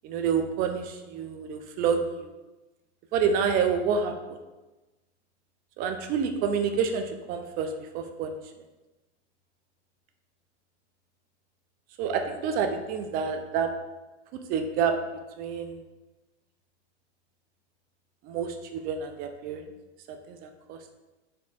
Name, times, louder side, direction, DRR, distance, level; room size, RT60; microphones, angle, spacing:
voice 1, 0.0-2.3 3.1-4.4 5.8-8.3 12.0-13.7 14.3-14.9 15.4-15.8 18.2-19.6 20.1-20.8, right 6 dB, 25° right, 6 dB, 0.3 m, -28 dB
4.4 x 4.2 x 2.4 m, 1.1 s
hypercardioid pair, 115°, 36 cm